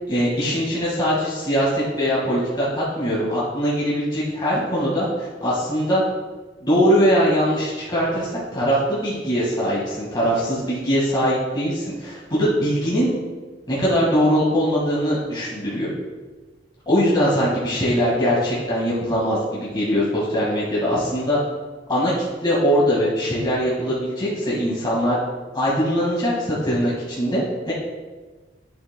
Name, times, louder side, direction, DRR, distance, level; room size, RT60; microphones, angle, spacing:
voice 1, 0.1-6.0 6.6-13.1 13.7-15.9 16.9-21.4 21.9-22.1 22.4-25.2 25.5-27.7, equal, 25° left, -7 dB, 1.8 m, -21 dB
9.7 x 8.2 x 2.2 m, 1.3 s
head